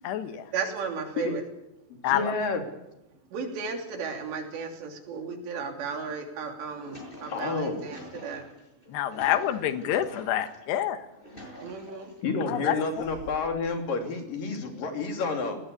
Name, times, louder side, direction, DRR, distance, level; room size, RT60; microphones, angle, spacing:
voice 1, 0.0-0.4 2.0-2.3 8.9-11.0 12.5-13.0, left 11 dB, 80° left, 10 dB, 3.4 m, -27 dB
voice 2, 0.5-1.4 3.3-8.4 11.6-12.1, right 5 dB, 80° right, 4 dB, 5.2 m, -34 dB
voice 3, 1.9-2.6 7.3-7.9 12.2-15.6, left 4 dB, 55° left, 4 dB, 4.5 m, -30 dB
sound 1, 6.5-10.6 11.0-12.3 12.9-13.6, equal, 10° left, 7.2 m, -46 dB
20.5 x 18.5 x 8.4 m, 0.92 s
omnidirectional pair, 4.9 m